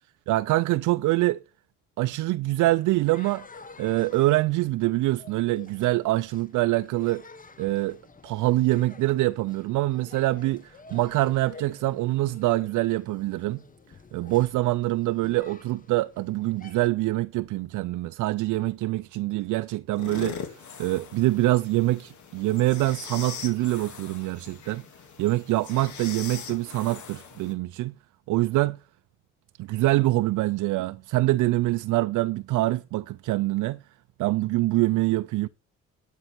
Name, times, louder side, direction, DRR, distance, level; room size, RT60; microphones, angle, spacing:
voice 1, 0.3-1.4 2.0-3.4 3.8-7.3 7.6-13.6 14.1-24.8 25.2-27.9 28.3-28.8 29.6-33.8 34.2-35.5, right 18 dB, 80° right, 0.5 m, -25 dB
sound 1, 2.9-16.9, left 4 dB, 25° left, 1.1 m, -50 dB
sound 2, 19.9-27.5, left 7 dB, 70° left, 2.5 m, -41 dB
12.0 x 5.5 x 5.8 m
cardioid pair, 90°, 30 cm